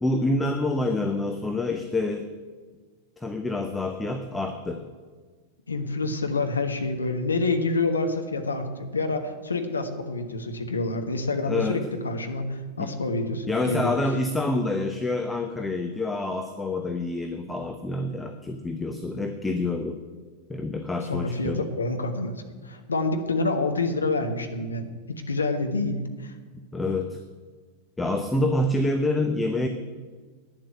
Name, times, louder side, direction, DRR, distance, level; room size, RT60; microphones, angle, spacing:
voice 1, 0.0-2.3 3.2-4.9 11.4-11.8 12.8-12.9 13.5-20.0 20.5-21.7 26.7-27.2 28.0-29.7, left 2 dB, 10° left, 6 dB, 0.8 m, -27 dB
voice 2, 5.7-14.0 21.1-26.3, left 3 dB, 75° left, 6 dB, 1.2 m, -27 dB
10.0 x 7.6 x 8.8 m, 1.4 s
figure-of-eight pair, 90°, 0 cm